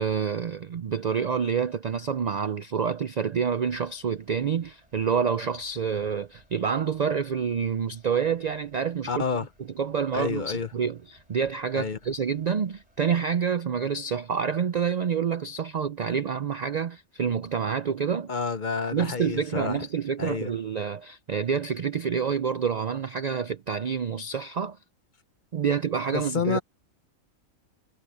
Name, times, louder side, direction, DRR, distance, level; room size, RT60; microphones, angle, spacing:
voice 1, 0.0-9.2 9.8-18.3 18.9-24.8 25.5-26.6, right 7 dB, 70° right, 0.4 m, -28 dB
sound 1, 3.6-13.1, right 1 dB, 30° right, 5.7 m, -62 dB
voice 2, 9.1-9.5 10.1-10.7 11.7-12.0 18.3-19.9 20.2-20.5 26.1-26.6, left 5 dB, 45° left, 0.7 m, -29 dB
omnidirectional pair, 1.4 m